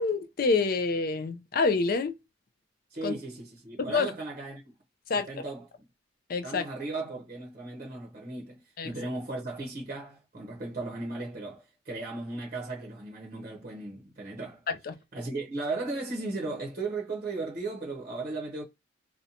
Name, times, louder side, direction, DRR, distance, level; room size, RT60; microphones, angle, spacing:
voice 1, 0.0-2.1 3.0-3.1 3.8-4.1 5.1-5.4 6.3-6.6 8.8-8.9 14.7-14.9, left 4 dB, 45° left, 0.4 m, -27 dB
voice 2, 2.9-4.6 5.3-5.7 6.4-14.6 15.1-18.6, right 3 dB, 40° right, 0.7 m, -36 dB
2.6 x 2.1 x 2.7 m
head